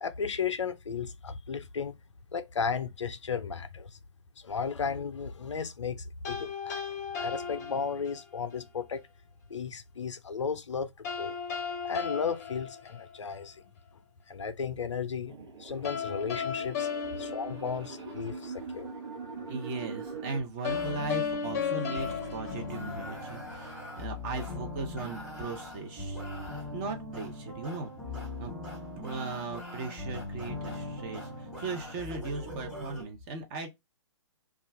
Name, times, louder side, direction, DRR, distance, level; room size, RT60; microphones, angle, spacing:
voice 1, 0.0-2.0 2.3-4.0 4.4-6.8 7.2-9.0 9.5-11.4 11.8-13.6 14.3-15.3 15.6-16.9 17.2-18.9, left 6 dB, 80° left, 0.5 m, -34 dB
sound 1, 6.2-8.4 11.0-13.5 15.8-18.4 20.6-23.5, left 7 dB, 35° left, 0.6 m, -35 dB
sound 2, 15.3-20.4, right 4 dB, 65° right, 1.0 m, -42 dB
voice 2, 19.5-26.2 26.7-27.9 28.4-28.5 29.0-33.7, right 3 dB, 25° right, 0.7 m, -38 dB
sound 3, 20.7-33.0, left 2 dB, 5° right, 1.2 m, -40 dB
2.4 x 2.3 x 3.2 m
figure-of-eight pair, 130°, 15 cm